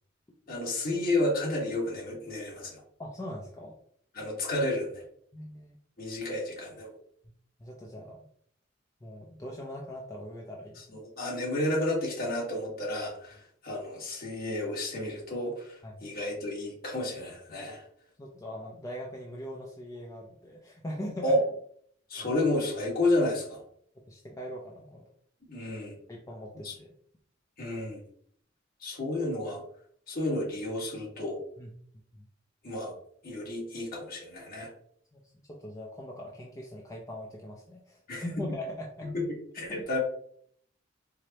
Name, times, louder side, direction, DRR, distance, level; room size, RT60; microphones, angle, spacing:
voice 1, 0.5-2.8 4.1-5.0 6.0-6.9 10.9-17.8 21.2-21.4 22.1-23.6 25.5-25.9 26.6-26.7 27.6-28.0 28.8-29.6 30.1-31.4 32.6-32.9 33.2-34.7 38.1-38.3 39.0-40.0, left 1 dB, 50° left, -3 dB, 1.4 m, -31 dB
voice 2, 3.0-3.8 5.3-5.8 7.6-8.3 9.0-11.0 15.8-16.1 18.2-21.3 22.2-22.3 24.0-25.0 26.1-26.9 31.6-31.7 32.1-32.2 35.1-35.2 35.5-39.1 39.7-39.8, equal, 15° left, -2 dB, 0.4 m, -41 dB
4.7 x 2.1 x 2.8 m, 0.63 s
head